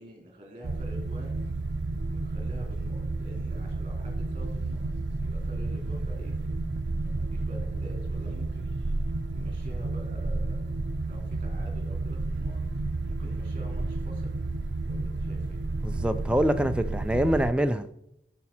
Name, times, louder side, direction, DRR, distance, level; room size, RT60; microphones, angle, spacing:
voice 1, 0.0-1.4 2.1-4.9 5.2-6.5 6.9-8.7 9.3-10.6 11.1-12.6 13.1-14.4 14.9-15.6, equal, 30° right, 2.9 m, -48 dB
sound 1, 0.6-17.5, right 2 dB, 75° right, 0.6 m, -31 dB
voice 2, 15.8-17.9, equal, 5° right, 0.4 m, -25 dB
11.0 x 6.0 x 4.3 m
head